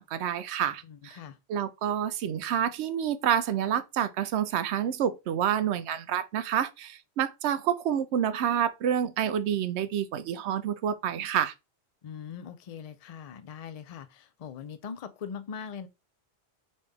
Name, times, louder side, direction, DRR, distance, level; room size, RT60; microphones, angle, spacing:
voice 1, 0.0-1.2 1.5-11.5, right 9 dB, 90° right, 0.9 m, -28 dB
voice 2, 0.8-1.4 12.0-15.9, left 7 dB, 50° left, 0.5 m, -41 dB
4.0 x 3.3 x 3.4 m
omnidirectional pair, 1.1 m